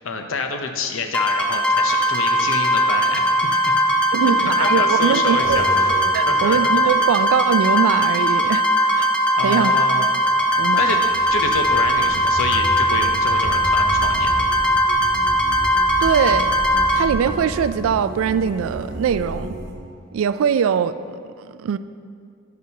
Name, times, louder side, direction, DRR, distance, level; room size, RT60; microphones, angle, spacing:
voice 1, 0.0-3.8 4.6-5.6 6.3-6.8 9.3-10.0 10.8-11.0 11.3-14.3, left 4 dB, 75° left, 5 dB, 0.7 m, -27 dB
sound 1, 1.1-17.0, equal, 5° left, 0.5 m, -19 dB
voice 2, 4.1-5.6 6.1-9.1 9.4-9.7 10.6-10.8 16.0-16.5 16.9-19.6 20.1-21.8, right 7 dB, 85° right, 13 dB, 0.3 m, -22 dB
sound 2, 5.4-6.6 10.3-19.7, equal, 55° right, 1.0 m, -32 dB
11.0 x 6.1 x 2.8 m, 2.2 s
head